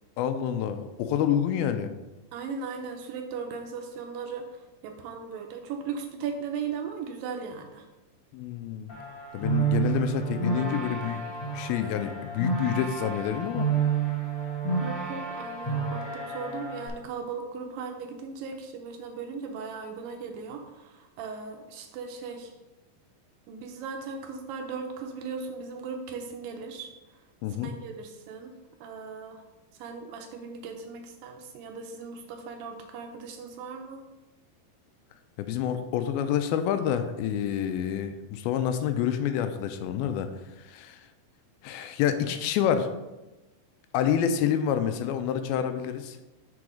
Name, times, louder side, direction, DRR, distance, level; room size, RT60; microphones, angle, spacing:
voice 1, 0.2-1.9 8.3-8.9 9.3-11.2 11.5-13.7 27.4-27.7 35.4-41.1 41.6-42.9 43.9-46.2, left 9 dB, 85° left, 9 dB, 2.4 m, -28 dB
voice 2, 2.3-7.9 14.7-22.5 23.5-26.9 27.6-29.4 29.8-34.0, right 5 dB, 80° right, 4 dB, 2.2 m, -38 dB
sound 1, 8.9-16.9, right 5 dB, 55° left, 0.9 m, -30 dB
6.1 x 4.6 x 4.9 m, 1.1 s
omnidirectional pair, 4.3 m